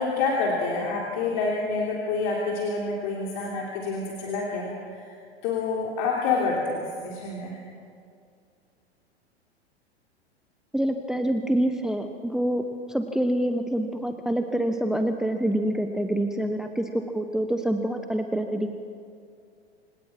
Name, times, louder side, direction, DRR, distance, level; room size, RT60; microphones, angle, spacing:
voice 1, 0.0-5.1 5.4-7.6, left 4 dB, 50° left, -2 dB, 3.2 m, -27 dB
voice 2, 10.7-12.6 12.9-18.7, right 1 dB, ahead, 6 dB, 1.0 m, -26 dB
27.0 x 17.5 x 5.9 m, 2.3 s
figure-of-eight pair, 95°, 32 cm